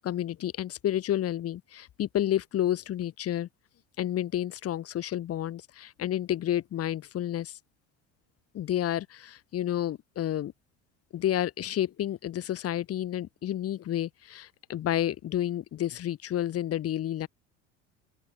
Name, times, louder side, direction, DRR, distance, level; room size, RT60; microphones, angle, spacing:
voice 1, 0.0-3.5 4.0-7.6 8.5-10.5 11.1-17.3, left 12 dB, 45° left, 2.1 m, -30 dB
open air
hypercardioid pair, 80°, 33 cm